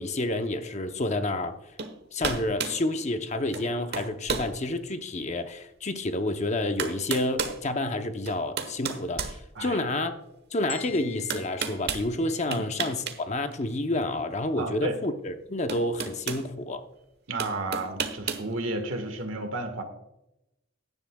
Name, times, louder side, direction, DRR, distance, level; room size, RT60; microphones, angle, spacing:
voice 1, 0.0-1.6 2.1-10.1 10.5-16.8, left 2 dB, 35° left, 0.8 m, -29 dB
sound 1, 1.8-1.9 2.2-2.8 3.5-3.7 3.9-4.5 5.1-5.2 6.3-6.4 6.8-7.6 8.3-9.9 11.3-12.1 12.5-13.2 13.5-13.6 15.0-15.1 15.7-16.4 17.4-18.5, right 5 dB, 55° right, 1.1 m, -32 dB
sound 2, 10.7-12.9, left 7 dB, 60° left, 1.3 m, -45 dB
voice 2, 14.6-14.9 17.3-19.8, right 2 dB, 75° right, 1.7 m, -32 dB
16.0 x 10.5 x 2.3 m
head